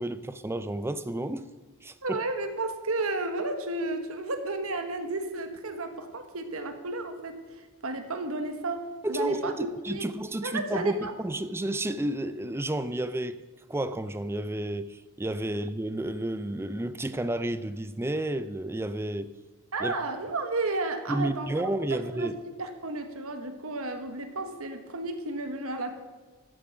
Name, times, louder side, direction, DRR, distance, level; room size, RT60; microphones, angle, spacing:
voice 1, 0.0-1.5 1.8-2.2 9.0-13.4 13.7-19.3 19.8-19.9 21.1-22.3, right 1 dB, 10° right, 0.4 m, -31 dB
voice 2, 2.0-10.1 10.4-11.1 19.7-22.3 22.6-26.0, right 2 dB, 70° right, 1.3 m, -33 dB
13.0 x 7.5 x 5.9 m
head